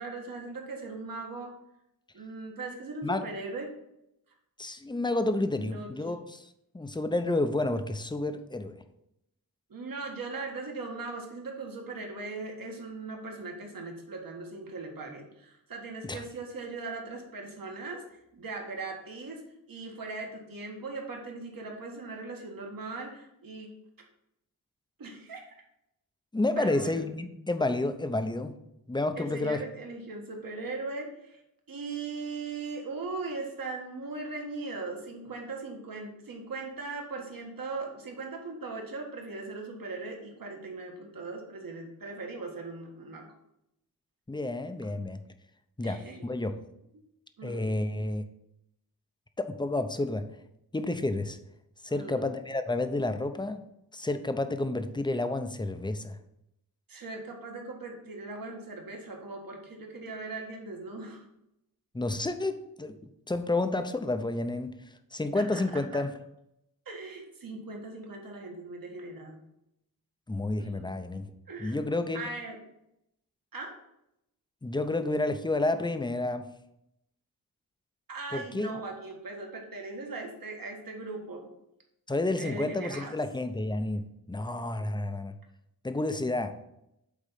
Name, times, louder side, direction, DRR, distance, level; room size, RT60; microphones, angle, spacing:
voice 1, 0.0-1.6 2.1-3.7 5.6-5.9 9.7-19.4 19.7-23.7 25.0-25.6 26.6-27.0 29.2-31.4 31.7-43.3 45.8-46.2 47.4-47.7 51.9-52.3 56.9-61.2 65.3-66.0 66.9-69.4 70.6-70.9 71.5-71.8 72.1-72.6 73.5-73.8 78.1-81.5 82.4-83.1, right 3 dB, 65° right, 1 dB, 1.7 m, -39 dB
voice 2, 4.6-8.8 16.0-16.2 26.3-28.5 28.9-29.6 44.3-45.2 45.8-46.6 47.4-48.3 49.4-50.3 50.7-51.4 51.8-53.6 53.9-56.2 61.9-64.7 65.1-66.1 70.3-71.3 71.6-72.2 74.6-76.4 78.3-78.7 82.1-85.4 85.8-86.6, left 2 dB, 10° left, 8 dB, 0.7 m, -30 dB
8.3 x 4.0 x 5.6 m, 0.81 s
wide cardioid pair, 90°, 37 cm